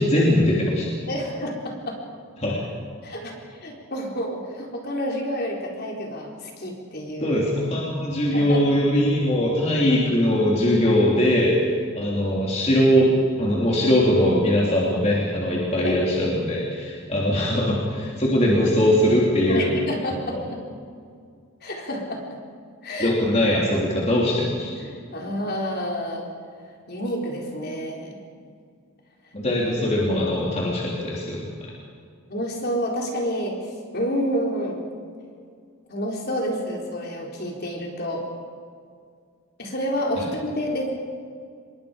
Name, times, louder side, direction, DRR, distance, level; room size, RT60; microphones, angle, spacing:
voice 1, 0.0-0.9 2.4-2.6 7.2-11.7 11.9-13.1 13.4-19.8 20.3-20.4 23.0-24.7 29.3-31.4 40.2-40.3, left 1 dB, 30° left, -4 dB, 3.3 m, -21 dB
voice 2, 1.1-2.0 3.0-7.4 8.3-8.6 15.8-16.0 19.5-20.6 21.6-22.2 22.8-23.1 23.7-23.9 24.8-26.3 26.9-28.2 32.3-33.6 33.9-34.8 35.9-38.2 39.6-41.0, equal, 45° left, 0 dB, 4.1 m, -29 dB
27.0 x 22.0 x 5.2 m, 2.2 s
head